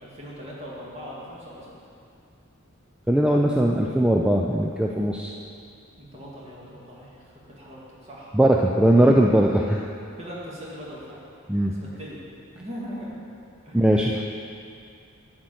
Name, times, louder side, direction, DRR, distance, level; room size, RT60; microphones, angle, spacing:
voice 1, 0.0-1.7 6.0-8.4 8.9-9.0 10.2-11.2 11.7-12.2 12.5-13.1 13.6-13.8, equal, 30° right, -6 dB, 2.1 m, -40 dB
voice 2, 3.1-5.3 8.3-9.9 11.5-11.8 13.7-14.2, right 1 dB, 5° right, -1 dB, 0.3 m, -20 dB
10.5 x 4.3 x 7.8 m, 2.5 s
head